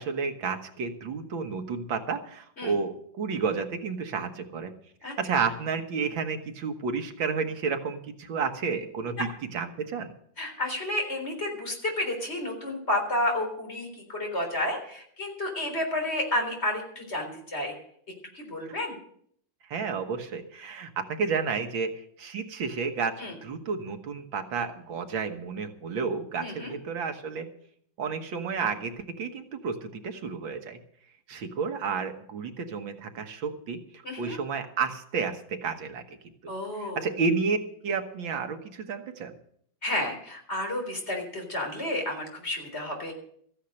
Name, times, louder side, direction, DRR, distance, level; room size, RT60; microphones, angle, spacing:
voice 1, 0.0-4.7 5.2-10.1 19.7-21.9 22.2-27.5 28.0-30.8 31.3-36.2 36.4-36.5 36.8-37.6 37.8-39.3, right 5 dB, 85° right, 6 dB, 2.1 m, -31 dB
voice 2, 5.0-5.4 10.4-17.7 18.3-18.9 23.2-23.3 26.4-26.7 34.0-34.4 36.5-37.1 39.8-43.1, left 1 dB, 30° left, 2 dB, 4.1 m, -31 dB
14.5 x 10.5 x 6.5 m, 0.65 s
omnidirectional pair, 2.1 m